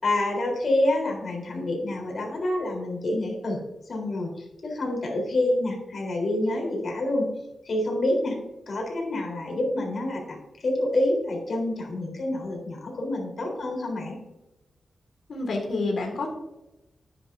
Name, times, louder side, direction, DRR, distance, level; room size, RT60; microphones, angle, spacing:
voice 1, 0.0-3.6 3.9-7.3 7.6-8.4 8.7-14.2, left 1 dB, 55° left, 0 dB, 3.7 m, -27 dB
voice 2, 15.3-16.3, left 3 dB, 80° left, 2 dB, 2.0 m, -28 dB
11.0 x 9.4 x 2.6 m, 0.96 s
wide cardioid pair, 100°, 0 cm